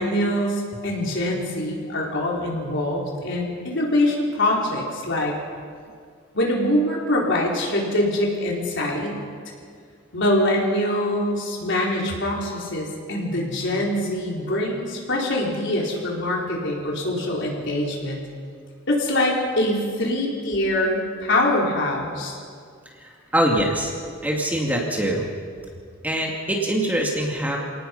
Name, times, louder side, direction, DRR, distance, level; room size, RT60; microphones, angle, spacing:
voice 1, 0.0-5.3 6.3-9.2 10.1-18.2 18.9-22.4, left 1 dB, 60° left, -2 dB, 4.6 m, -24 dB
voice 2, 23.3-23.9 24.2-25.3 26.0-27.6, right 1 dB, 10° right, -1 dB, 2.4 m, -23 dB
28.0 x 18.5 x 5.5 m, 2.2 s
head